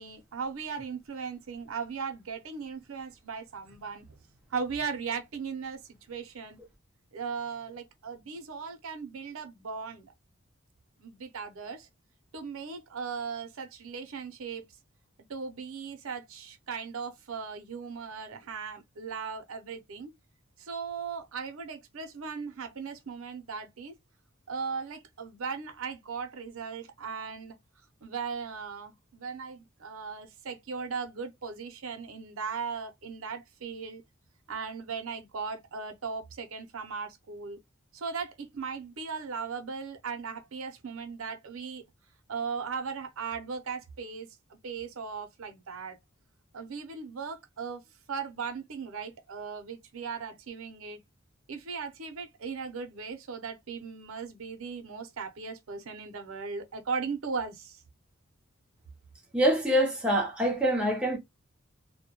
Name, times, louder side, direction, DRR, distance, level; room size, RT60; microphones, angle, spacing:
voice 1, 0.0-4.0 4.5-5.8 6.1-6.6 7.1-10.1 11.0-11.9 12.3-14.6 15.3-20.1 20.6-23.9 24.5-27.6 28.0-34.0 34.5-37.6 37.9-41.8 42.3-44.3 44.6-46.0 46.5-47.8 48.1-51.0 51.5-57.8, right 5 dB, 85° right, 0.6 m, -37 dB
voice 2, 59.3-61.2, equal, 5° right, 0.6 m, -25 dB
2.1 x 2.1 x 2.8 m
head